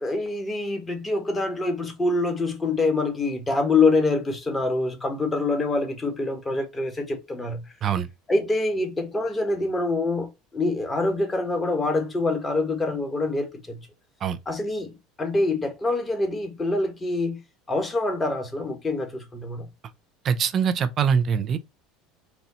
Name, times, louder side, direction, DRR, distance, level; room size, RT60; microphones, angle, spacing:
voice 1, 0.0-7.6 8.3-13.8 14.5-17.4 17.7-19.7, left 2 dB, 20° left, 1.4 m, -25 dB
voice 2, 20.2-21.6, right 7 dB, 40° right, 0.6 m, -23 dB
4.2 x 2.3 x 4.2 m
supercardioid pair, 105°, 0 cm